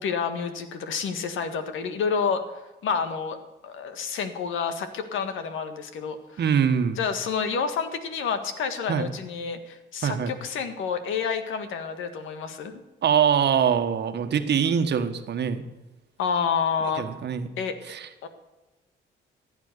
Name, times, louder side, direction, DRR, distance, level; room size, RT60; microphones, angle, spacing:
voice 1, 0.0-2.4 2.8-3.4 3.6-6.4 6.9-12.7 16.2-17.0 17.6-17.7 18.2-18.3, left 6 dB, 80° left, 9 dB, 1.7 m, -29 dB
voice 2, 6.4-7.0 8.9-9.1 10.0-10.3 13.0-15.6 17.0-17.5 17.9-18.1, right 7 dB, 60° right, 8 dB, 1.4 m, -23 dB
15.0 x 9.0 x 6.8 m, 1.1 s
cardioid pair, 90°, 20 cm